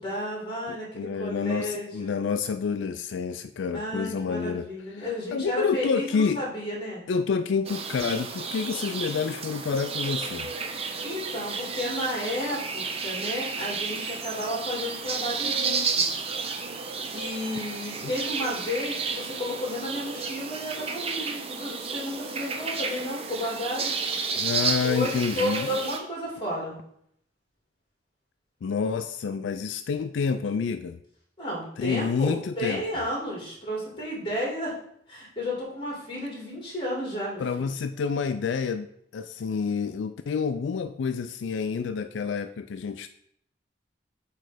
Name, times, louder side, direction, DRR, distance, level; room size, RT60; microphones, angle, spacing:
voice 1, 0.0-2.1 3.7-7.0 11.0-16.2 17.1-23.9 24.8-26.8 31.4-34.7 35.1-37.7, equal, 25° left, -3 dB, 2.4 m, -32 dB
voice 2, 0.7-4.7 4.9-6.4 7.1-10.5 18.0-18.1 24.4-25.8 28.6-31.0 31.8-32.8 37.4-38.9 39.1-43.1, left 5 dB, 80° left, 9 dB, 0.4 m, -28 dB
sound 1, 7.7-26.0, right 5 dB, 30° right, 0.6 m, -32 dB
7.7 x 3.3 x 5.0 m, 0.70 s
head